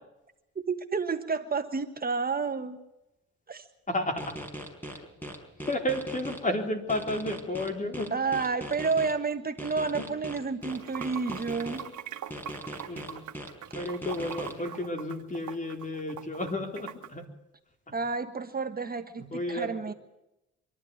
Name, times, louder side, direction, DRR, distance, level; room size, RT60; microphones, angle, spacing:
voice 1, 0.5-2.8 3.5-3.7 8.1-11.8 17.9-19.9, right 4 dB, 30° right, 7 dB, 1.3 m, -30 dB
voice 2, 3.9-4.4 5.6-8.1 10.0-10.1 11.8-12.0 12.9-13.2 13.7-17.3 17.9-18.0 18.8-19.7, left 1 dB, 25° left, 4 dB, 4.1 m, -32 dB
sound 1, 4.2-6.4 6.9-9.1 9.6-11.8 12.3-14.5, equal, 5° left, 4.7 m, -39 dB
Water / Sink (filling or washing), 10.6-17.1, right 10 dB, 75° right, 1.3 m, -42 dB
24.5 x 12.0 x 9.7 m, 0.91 s
cardioid pair, 90°, 30 cm